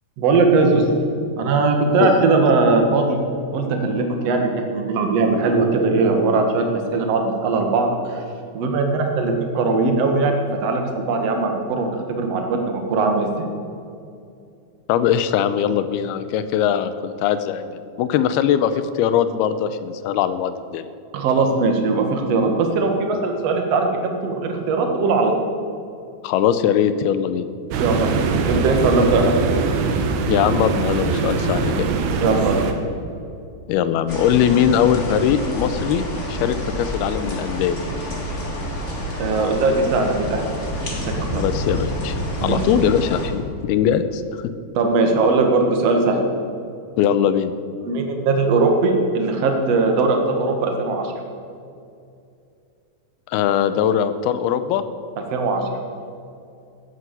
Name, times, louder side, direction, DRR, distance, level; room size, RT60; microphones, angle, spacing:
voice 1, 0.2-0.9 1.4-3.2 3.5-8.2 8.5-13.5 21.1-23.9 24.2-25.3 27.8-28.1 28.5-29.3 32.2-32.6 39.2-40.4 41.1-41.4 42.4-42.6 44.8-46.2 47.8-51.1 55.3-55.6, right 3 dB, 50° right, 3 dB, 2.3 m, -20 dB
voice 2, 14.9-20.9 26.2-27.5 30.3-31.9 33.7-37.8 41.3-44.5 47.0-47.5 53.3-54.8, left 9 dB, 85° left, 12 dB, 2.7 m, -21 dB
sound 1, 27.7-32.7, right 4 dB, 80° right, 3.1 m, -22 dB
Storm Lighting flood thunderclap, 34.1-43.3, equal, 25° left, 1.8 m, -28 dB
14.5 x 9.7 x 8.2 m, 2.5 s
omnidirectional pair, 4.6 m